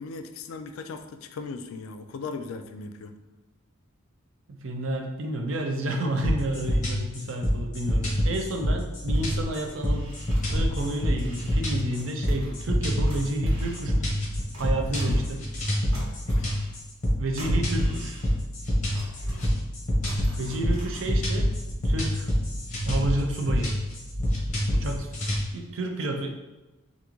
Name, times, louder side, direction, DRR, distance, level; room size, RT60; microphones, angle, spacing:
voice 1, 0.0-3.1 16.3-16.5 19.2-19.5, left 4 dB, 75° left, 7 dB, 0.3 m, -38 dB
voice 2, 4.5-10.1 10.5-14.1 14.6-15.4 17.2-18.2 20.4-21.5 21.8-22.3 22.8-23.7 24.7-25.1 25.5-26.3, right 1 dB, 65° right, 4 dB, 0.5 m, -30 dB
sound 1, 6.2-25.4, equal, 35° left, 1.0 m, -26 dB
sound 2, 9.0-12.7 13.1-15.7 15.9-18.6 18.9-21.4 21.8-21.9, equal, 85° right, 1.4 m, -41 dB
3.6 x 2.5 x 3.0 m, 1.1 s
head